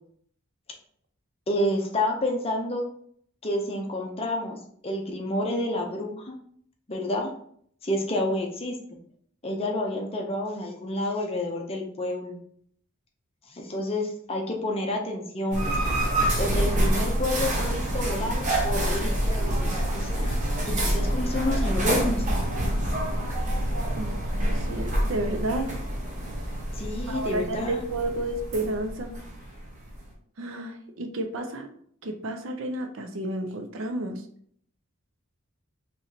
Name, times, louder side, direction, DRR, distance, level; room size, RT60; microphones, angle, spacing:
voice 1, 1.5-2.8 3.4-4.6 4.8-6.3 6.9-7.3 7.8-8.8 9.4-12.4 13.5-15.7 16.4-20.4 20.7-22.2 26.7-27.8, left 1 dB, 25° left, 1 dB, 0.6 m, -29 dB
sound 1, 15.5-30.1, right 1 dB, 35° right, 0.9 m, -27 dB
voice 2, 23.9-25.7 27.1-29.1 30.4-31.7 32.0-34.2, right 2 dB, 60° right, 5 dB, 0.5 m, -31 dB
4.1 x 3.1 x 2.7 m, 0.63 s
head